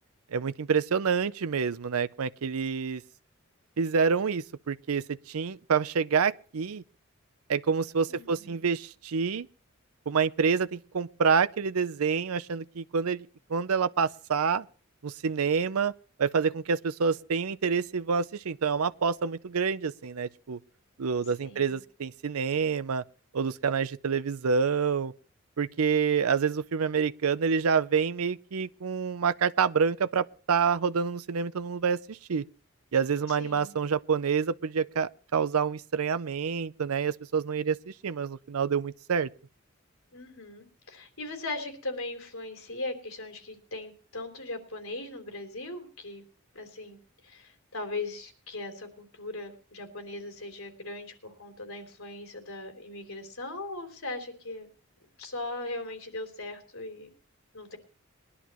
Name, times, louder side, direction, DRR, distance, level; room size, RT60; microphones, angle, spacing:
voice 1, 0.3-3.0 3.8-6.8 7.5-9.5 10.1-14.6 15.0-15.9 16.2-20.6 21.0-23.0 23.3-25.1 25.6-32.4 32.9-39.3, right 6 dB, 85° right, 0.5 m, -27 dB
voice 2, 8.1-8.7 21.4-21.8 33.3-33.7 40.1-46.2 46.5-47.0 47.2-54.7 55.2-57.1 57.5-57.8, left 2 dB, 75° left, 3.3 m, -39 dB
22.0 x 11.0 x 3.0 m
head